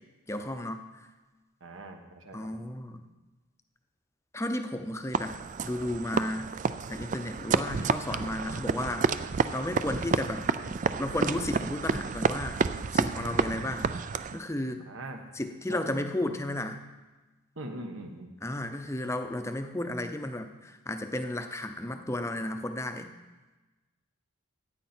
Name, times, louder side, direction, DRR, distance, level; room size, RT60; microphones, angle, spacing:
voice 1, 0.3-1.1 2.3-3.1 4.3-6.5 6.9-9.1 9.5-10.5 11.0-12.6 12.9-13.9 14.3-14.8 15.3-16.8 18.4-23.1, left 1 dB, 15° left, 7 dB, 0.6 m, -33 dB
voice 2, 1.6-2.5 14.8-15.2 15.7-15.8 17.6-18.3, right 1 dB, 70° right, 5 dB, 1.3 m, -41 dB
sound 1, 5.1-14.4, right 5 dB, 35° right, 0.3 m, -30 dB
15.0 x 9.3 x 4.4 m, 1.2 s
head